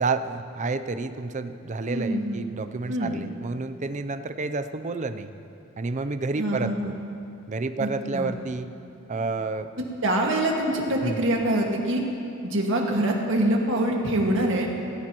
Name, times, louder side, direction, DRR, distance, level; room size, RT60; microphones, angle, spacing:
voice 1, 0.0-5.3 5.8-6.9 7.5-8.7 9.1-9.7 11.0-11.3, right 3 dB, 35° right, 10 dB, 0.5 m, -30 dB
voice 2, 1.9-2.4 2.9-3.1 6.4-6.9 7.8-8.3 10.0-12.0 12.4-14.7, right 1 dB, 65° right, 0 dB, 1.8 m, -25 dB
18.0 x 15.5 x 3.0 m, 2.8 s
head